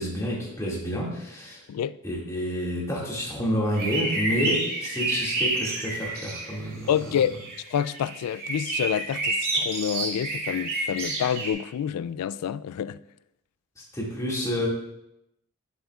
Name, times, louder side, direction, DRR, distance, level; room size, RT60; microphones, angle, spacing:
voice 1, 0.0-1.6 2.0-6.9 13.9-14.7, equal, 15° left, 2.1 m, -29 dB
sound 1, 3.7-6.6 7.0-11.5, right 2 dB, 45° right, 2.3 m, -29 dB
voice 2, 6.9-7.4 7.7-13.0, left 9 dB, 85° left, 0.3 m, -28 dB
10.5 x 7.8 x 2.4 m
head